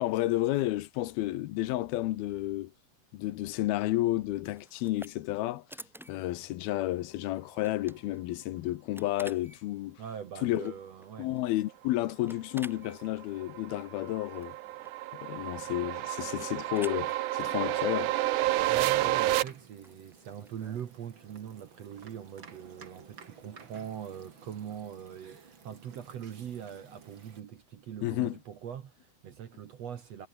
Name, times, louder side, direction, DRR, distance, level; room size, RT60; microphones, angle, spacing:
voice 1, 0.0-2.7 3.1-5.6 6.1-10.0 10.4-10.7 11.2-14.6 15.1-18.1 28.0-28.4, left 16 dB, 85° left, 2.8 m, -31 dB
sound 1, 4.4-20.9, equal, ahead, 2.8 m, -53 dB
voice 2, 10.0-11.3 18.7-30.3, right 8 dB, 55° right, 2.0 m, -42 dB
sound 2, 12.9-19.4, right 16 dB, 75° right, 1.9 m, -30 dB
sound 3, 18.8-27.4, right 6 dB, 35° right, 2.7 m, -53 dB
omnidirectional pair, 4.4 m